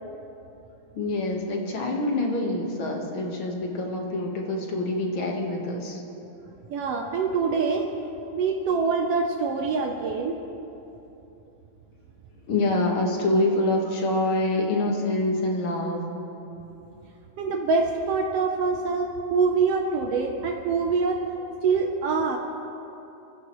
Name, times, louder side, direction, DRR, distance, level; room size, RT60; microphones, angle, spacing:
voice 1, 0.9-6.0 12.5-16.0, left 2 dB, 50° left, 0 dB, 1.8 m, -26 dB
voice 2, 6.7-7.9 8.3-10.4 17.4-21.2 21.6-22.4, right 4 dB, 85° right, 2 dB, 1.3 m, -25 dB
24.5 x 14.5 x 3.1 m, 3.0 s
omnidirectional pair, 3.8 m